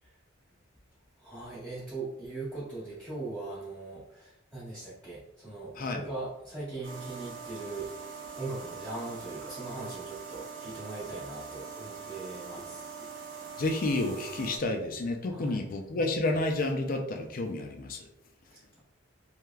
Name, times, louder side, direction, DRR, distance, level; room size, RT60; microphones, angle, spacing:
voice 1, 1.2-7.9 8.4-12.9 15.3-15.6 18.5-18.8, right 2 dB, 5° left, -11 dB, 1.0 m, -40 dB
voice 2, 5.8-6.1 13.6-18.1, left 2 dB, 45° left, 4 dB, 0.4 m, -30 dB
sound 1, 6.8-14.6, right 6 dB, 70° right, 0.8 m, -43 dB
3.3 x 2.7 x 2.3 m, 0.82 s
head